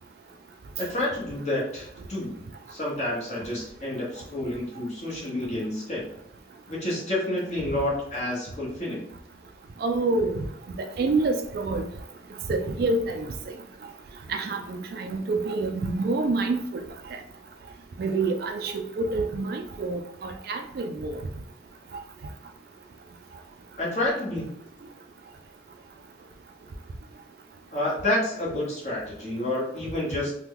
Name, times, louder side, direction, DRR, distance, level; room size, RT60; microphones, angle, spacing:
voice 1, 0.8-2.3 2.7-6.0 6.7-9.0 23.8-24.5 27.7-30.3, left 1 dB, 35° left, -5 dB, 1.1 m, -29 dB
voice 2, 9.8-10.4 10.8-11.9 12.5-13.5 14.3-16.8 17.1-17.2 18.0-21.2, right 3 dB, 50° right, 5 dB, 0.3 m, -27 dB
2.9 x 2.2 x 3.5 m, 0.72 s
head